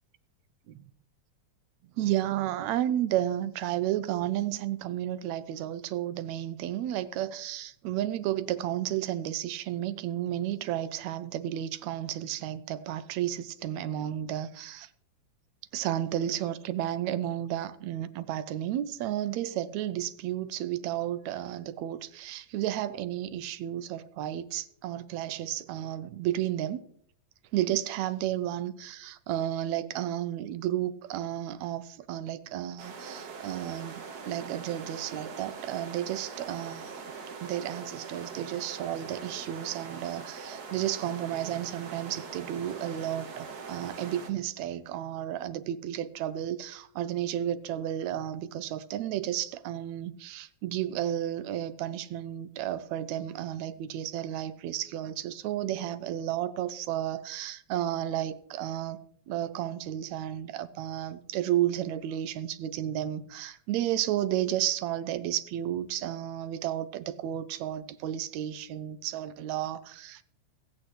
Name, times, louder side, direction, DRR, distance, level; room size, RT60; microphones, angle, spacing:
voice 1, 2.0-14.9 15.7-26.8 27.5-37.0 37.4-59.0 59.3-70.2, right 12 dB, 80° right, 1.9 m, -32 dB
sound 1, 32.8-44.3, right 5 dB, 50° right, 1.1 m, -42 dB
22.5 x 8.5 x 3.1 m
omnidirectional pair, 3.3 m